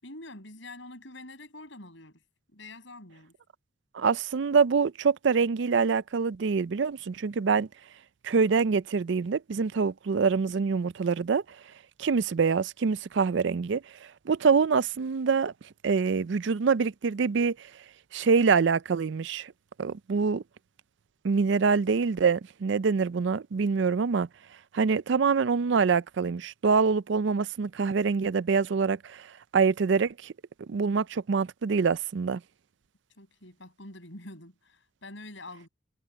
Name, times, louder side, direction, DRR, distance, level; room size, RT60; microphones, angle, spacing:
voice 1, 0.0-2.2 2.5-3.3 33.2-35.7, left 2 dB, 65° left, 6.4 m, -46 dB
voice 2, 3.9-7.7 8.2-11.4 12.0-15.5 15.8-17.7 18.1-19.5 19.8-20.4 21.2-24.3 24.7-29.3 29.5-30.3 30.7-32.4, right 5 dB, 60° right, 0.4 m, -25 dB
head